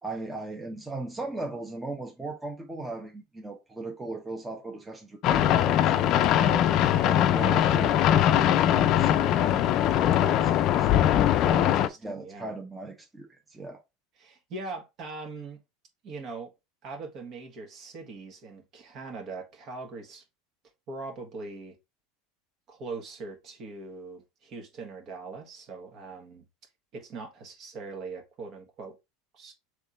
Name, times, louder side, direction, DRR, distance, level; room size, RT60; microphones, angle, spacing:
voice 1, 0.0-13.8, right 2 dB, 10° right, 0.9 m, -38 dB
sound 1, 5.2-11.9, left 11 dB, 50° left, 0.4 m, -22 dB
voice 2, 11.5-12.5 14.2-15.6 16.0-16.5 16.8-20.2 20.9-21.8 22.7-26.4 26.9-28.9 29.3-29.5, right 3 dB, 45° right, 1.6 m, -41 dB
3.6 x 3.1 x 4.0 m
hypercardioid pair, 100°, 0 cm